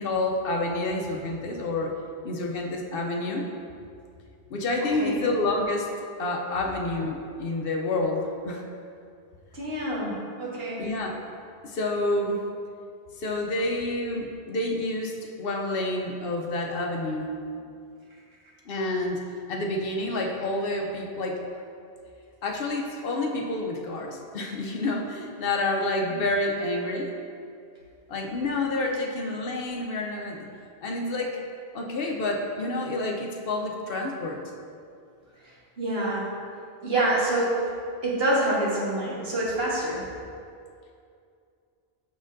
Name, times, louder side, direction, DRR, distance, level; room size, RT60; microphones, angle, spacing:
voice 1, 0.0-1.9 2.2-3.5 4.5-5.9 6.2-8.6 10.8-11.2 11.6-12.4 13.2-17.3 18.7-21.4 22.4-27.1 28.1-30.5 30.8-31.4 31.7-34.4, left 2 dB, 65° left, 1 dB, 0.8 m, -28 dB
voice 2, 4.8-5.2 9.5-10.8 26.1-26.2 35.4-36.3 36.8-37.5 38.0-40.0, right 1 dB, 65° right, -6 dB, 1.5 m, -27 dB
6.3 x 5.9 x 2.6 m, 2.4 s
omnidirectional pair, 1.1 m